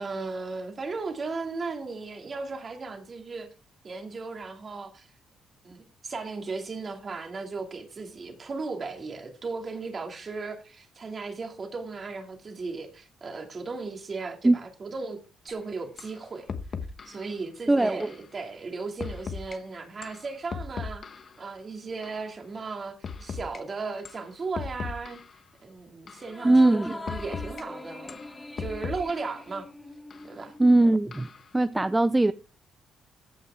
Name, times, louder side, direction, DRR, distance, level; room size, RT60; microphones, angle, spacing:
voice 1, 0.0-3.5 3.8-5.1 5.6-15.2 15.4-16.5 17.1-21.1 21.4-25.2 25.6-28.2 28.6-29.6 30.2-30.5, right 4 dB, 40° right, 2.4 m, -36 dB
sound 1, 15.5-15.6 16.0-16.2 16.5-17.2 18.0-18.2 19.0-19.6 20.0-21.4 22.0-22.2 23.0-23.6 24.1-24.3 24.6-25.4 26.1-26.3 27.1-27.6 28.1-29.4 30.1-30.3 31.1-31.5, left 5 dB, 50° left, 1.1 m, -37 dB
voice 2, 17.7-18.1 26.4-26.9 30.6-31.3 31.5-32.3, right 2 dB, 15° right, 0.4 m, -20 dB
sound 2, 26.2-31.0, left 2 dB, 20° left, 1.3 m, -42 dB
14.5 x 5.8 x 3.6 m
cardioid pair, 90°, 0 cm